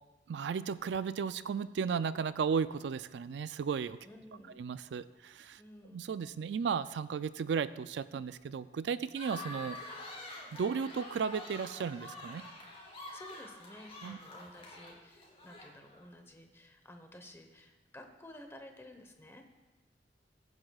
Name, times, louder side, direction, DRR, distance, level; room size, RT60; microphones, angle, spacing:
voice 1, 0.3-4.0 4.6-5.6 5.9-9.8 10.5-12.4 14.0-14.2, right 6 dB, 70° right, 15 dB, 0.3 m, -34 dB
voice 2, 4.0-4.6 5.6-6.0 13.1-19.4, left 1 dB, 15° left, 5 dB, 1.0 m, -53 dB
sound 1, 9.1-16.0, left 1 dB, 35° left, 3.2 m, -47 dB
21.5 x 9.7 x 2.4 m, 1.1 s
head